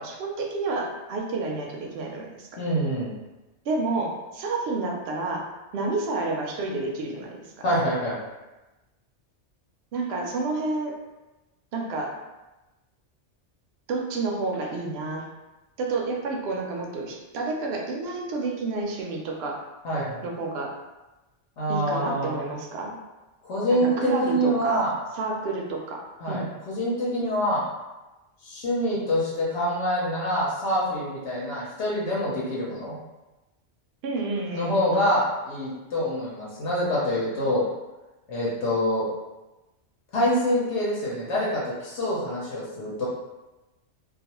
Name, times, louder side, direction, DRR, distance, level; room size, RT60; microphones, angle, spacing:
voice 1, 0.0-2.5 3.6-5.5 5.7-7.5 9.9-10.9 11.7-12.1 13.9-15.2 15.8-19.6 20.2-20.7 21.7-23.0 23.7-24.8 25.1-26.0 26.3-26.5 34.0-34.7, right 3 dB, 70° right, 0 dB, 0.8 m, -30 dB
voice 2, 2.6-3.1 7.6-8.2 19.8-20.2 21.6-22.3 23.5-24.9 26.2-27.6 28.4-33.0 34.5-37.6 38.3-39.1 40.1-43.1, equal, 75° left, -6 dB, 1.0 m, -26 dB
2.4 x 2.3 x 2.8 m, 1.1 s
omnidirectional pair, 1.2 m